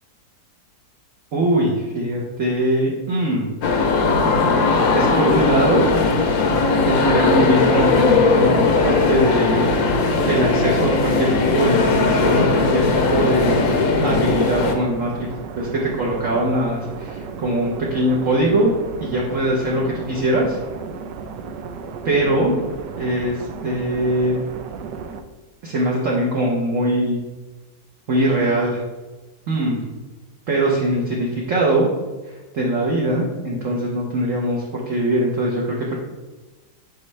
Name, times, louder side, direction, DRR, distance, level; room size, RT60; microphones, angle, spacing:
voice 1, 1.3-3.5 4.9-5.9 6.8-13.5 14.0-15.3 15.6-18.7 19.0-20.6 22.0-22.6 23.0-24.3 25.6-27.2 28.1-28.8 29.5-29.8 30.5-31.9 32.3-35.9, right 1 dB, 55° right, -3 dB, 1.2 m, -21 dB
sound 1, 3.6-14.8, left 4 dB, 65° left, 1.1 m, -18 dB
sound 2, 7.5-25.2, right 5 dB, 85° right, 1.2 m, -34 dB
6.4 x 5.5 x 3.2 m, 1.2 s
omnidirectional pair, 1.8 m